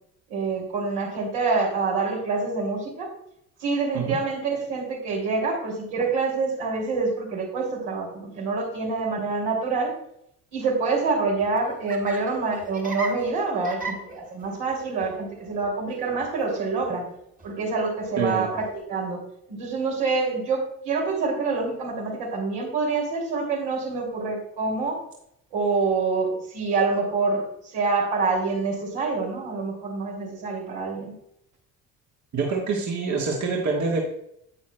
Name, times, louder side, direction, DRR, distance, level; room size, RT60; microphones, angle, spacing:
voice 1, 0.3-3.1 3.6-9.9 10.5-17.0 17.4-19.2 19.5-25.0 25.5-31.1, right 4 dB, 70° right, -2 dB, 2.8 m, -26 dB
Laughter, 11.3-18.8, right 3 dB, 20° right, 1.6 m, -40 dB
voice 2, 18.2-18.5 32.3-34.0, right 4 dB, 40° right, -1 dB, 1.5 m, -25 dB
9.7 x 8.4 x 2.2 m, 0.76 s
hypercardioid pair, 50°, 43 cm